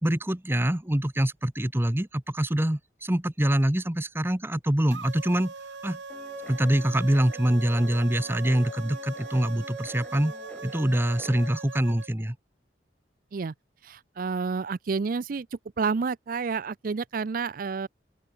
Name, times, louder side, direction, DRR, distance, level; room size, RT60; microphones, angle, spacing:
voice 1, 0.0-5.5 5.8-6.0 6.5-10.3 10.6-12.4, right 1 dB, 15° right, 1.0 m, -25 dB
sound 1, 4.9-12.1, right 4 dB, 90° right, 1.3 m, -41 dB
Guitar, 6.1-11.5, left 1 dB, 10° left, 1.3 m, -45 dB
voice 2, 13.8-15.5 15.8-17.9, right 5 dB, 50° right, 0.4 m, -29 dB
open air
head